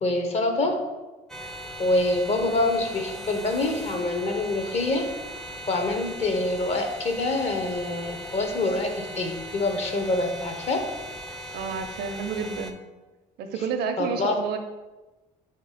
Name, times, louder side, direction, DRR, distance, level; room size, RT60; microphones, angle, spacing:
voice 1, 0.0-0.8 1.8-5.1 5.7-10.8 14.0-14.4, left 2 dB, 40° left, 4 dB, 0.7 m, -26 dB
sound 1, 1.3-12.7, equal, 5° left, 0.4 m, -39 dB
voice 2, 11.5-12.8 13.4-14.6, right 6 dB, 75° right, 7 dB, 0.5 m, -30 dB
3.7 x 2.9 x 4.8 m, 1.1 s
cardioid pair, 110°, 17 cm